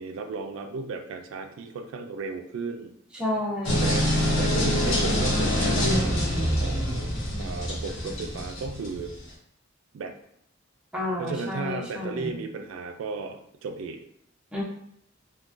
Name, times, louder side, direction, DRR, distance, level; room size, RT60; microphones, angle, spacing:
voice 1, 0.0-2.9 3.8-4.1 4.4-9.1 9.9-10.1 11.2-14.0, right 4 dB, 75° right, 6 dB, 0.3 m, -35 dB
voice 2, 3.1-4.0 10.9-12.4 14.5-14.6, left 1 dB, 5° right, -5 dB, 0.6 m, -31 dB
sound 1, 3.6-9.2, equal, 90° left, 1.1 m, -25 dB
3.7 x 2.2 x 2.4 m, 0.72 s
head